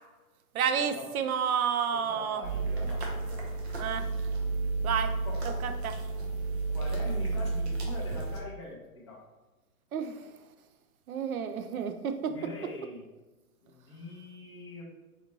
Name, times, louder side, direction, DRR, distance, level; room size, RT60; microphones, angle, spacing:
voice 1, 0.5-2.5 3.8-4.1 4.8-5.2 5.6-5.9 9.9-10.3 11.1-12.3, right 7 dB, 65° right, 8 dB, 0.5 m, -30 dB
voice 2, 2.1-3.5 5.3-5.6 6.7-9.2 12.3-13.0 13.6-14.8, left 2 dB, 20° left, -4 dB, 0.4 m, -43 dB
sound 1, 2.4-8.4, right 3 dB, 45° right, 0.9 m, -32 dB
4.1 x 2.6 x 3.0 m, 1.1 s
hypercardioid pair, 140°, 46 cm